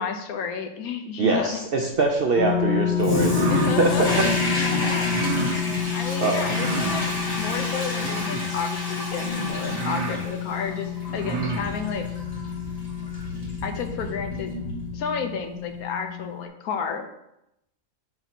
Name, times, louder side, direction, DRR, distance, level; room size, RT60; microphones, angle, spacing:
voice 1, 0.0-1.6 3.5-4.2 4.6-12.1 13.6-14.5 14.9-17.1, left 6 dB, 75° left, 5 dB, 1.2 m, -31 dB
voice 2, 1.2-3.4 3.8-4.1 6.2-6.5, right 3 dB, 60° right, 2 dB, 0.6 m, -23 dB
sound 1, 2.3-16.5, left 10 dB, 45° left, 0.7 m, -30 dB
Toilet flush, 3.0-15.3, left 1 dB, 25° left, 1.4 m, -30 dB
sound 2, 3.0-3.8 5.0-5.6 6.4-7.0 8.0-8.6 9.3-9.4 9.7-10.2 11.0-11.7, right 5 dB, 85° right, 1.3 m, -31 dB
7.1 x 2.7 x 5.8 m, 0.82 s
omnidirectional pair, 1.5 m